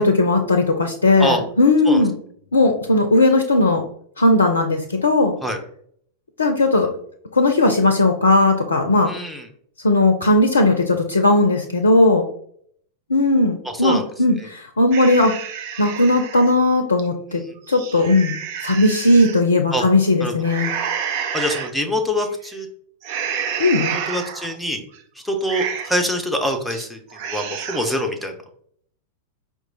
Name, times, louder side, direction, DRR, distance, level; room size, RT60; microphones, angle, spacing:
voice 1, 0.0-2.2 2.5-3.8 4.2-5.4 6.4-6.9 7.3-9.1 9.8-12.3 13.1-15.3 15.8-17.4 17.7-18.4 18.6-20.7 23.6-24.0, left 2 dB, 75° left, 5 dB, 0.5 m, -17 dB
voice 2, 9.1-9.5 13.7-14.1 14.4-14.5 17.3-17.5 19.7-19.8 20.2-20.3 21.3-22.7 23.9-24.8 25.2-28.4, equal, ahead, 3 dB, 0.8 m, -25 dB
sound 1, 14.9-16.5 17.0-17.1 17.6-19.4 20.4-21.7 22.2-22.5 23.0-24.6 24.9-25.0 25.4-26.1 26.5-26.9 27.1-28.0, right 8 dB, 50° right, 0.5 m, -29 dB
4.6 x 2.4 x 3.8 m, 0.63 s
figure-of-eight pair, 90°, 0 cm